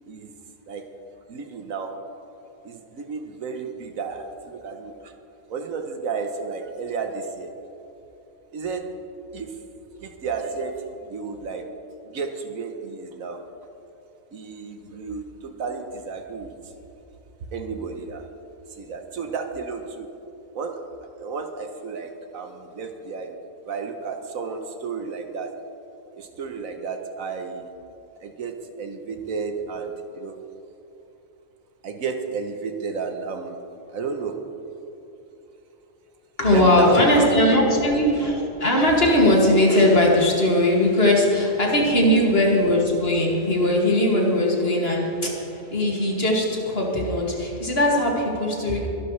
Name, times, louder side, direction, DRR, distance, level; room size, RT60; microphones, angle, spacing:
voice 1, 1.3-2.0 2.6-5.1 5.5-7.5 8.5-9.0 9.3-9.7 10.0-11.7 12.1-13.4 14.3-16.5 17.5-18.3 18.7-20.1 20.5-20.8 21.2-23.4 23.6-25.6 26.1-27.7 28.2-30.5 31.8-33.6 33.9-34.5 36.5-37.9 42.0-42.2 44.2-44.3, right 5 dB, 70° right, 6 dB, 1.4 m, -32 dB
voice 2, 36.4-48.9, left 1 dB, 45° left, -2 dB, 2.5 m, -20 dB
24.0 x 11.0 x 3.3 m, 3.0 s
omnidirectional pair, 1.5 m